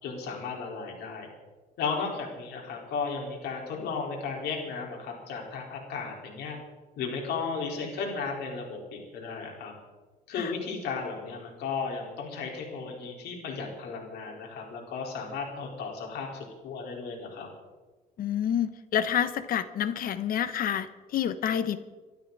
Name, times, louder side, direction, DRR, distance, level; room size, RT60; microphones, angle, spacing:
voice 1, 0.0-1.3 1.8-6.6 7.0-9.7 10.3-17.5, left 5 dB, 75° left, 0 dB, 4.6 m, -35 dB
voice 2, 18.2-21.8, left 9 dB, 60° left, 12 dB, 1.2 m, -28 dB
24.5 x 12.5 x 4.2 m, 1.2 s
cardioid pair, 110°, 17 cm